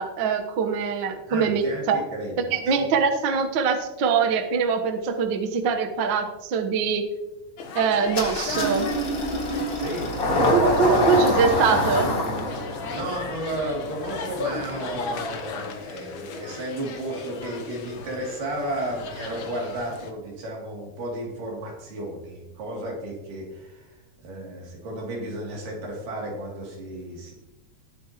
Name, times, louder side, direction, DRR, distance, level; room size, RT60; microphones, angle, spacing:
voice 1, 0.0-2.0 2.5-7.1 7.7-8.9 10.5-12.1, right 5 dB, 60° right, 4 dB, 1.2 m, -23 dB
voice 2, 1.2-2.9 9.8-11.0 12.9-27.3, right 1 dB, 90° right, -2 dB, 4.4 m, -33 dB
sound 1, 7.6-20.1, left 4 dB, 75° left, 1.1 m, -36 dB
Engine starting, 8.1-15.5, left 1 dB, 30° left, 2.0 m, -26 dB
18.5 x 8.6 x 3.0 m, 1.0 s
omnidirectional pair, 3.7 m